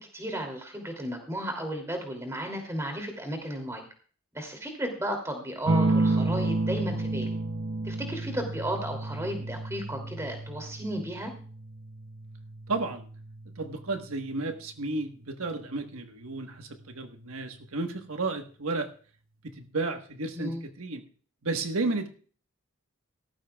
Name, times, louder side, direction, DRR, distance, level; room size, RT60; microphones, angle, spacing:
voice 1, 0.0-3.8 4.3-7.4 7.8-11.3 20.3-20.6, right 1 dB, 15° right, 3 dB, 2.7 m, -34 dB
sound 1, 5.7-14.8 16.2-16.8, right 2 dB, 65° right, 1.0 m, -31 dB
voice 2, 12.7-13.1 13.6-18.9 19.6-21.0 21.4-22.1, right 3 dB, 85° right, 5 dB, 1.3 m, -32 dB
17.5 x 14.0 x 2.3 m, 0.42 s
head